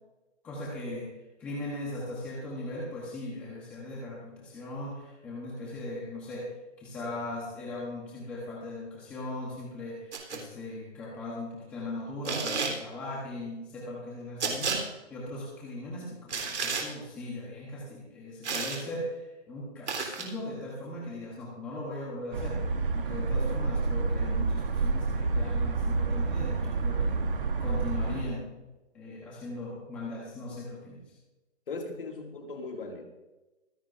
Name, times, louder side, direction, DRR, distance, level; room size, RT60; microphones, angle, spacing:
voice 1, 0.4-6.5 6.8-27.2 27.6-28.5 28.9-31.1, left 1 dB, 5° left, -5 dB, 1.0 m, -39 dB
sound 1, 10.1-10.4 12.2-12.8 14.4-14.8 16.3-16.9 18.4-18.8 19.9-20.3, right 4 dB, 70° right, 3.5 m, -31 dB
sound 2, 22.3-28.2, right 4 dB, 45° right, 1.6 m, -28 dB
voice 2, 31.7-33.0, left 3 dB, 50° left, 3 dB, 2.3 m, -38 dB
25.5 x 10.5 x 2.6 m, 1.1 s
hypercardioid pair, 175°, 36 cm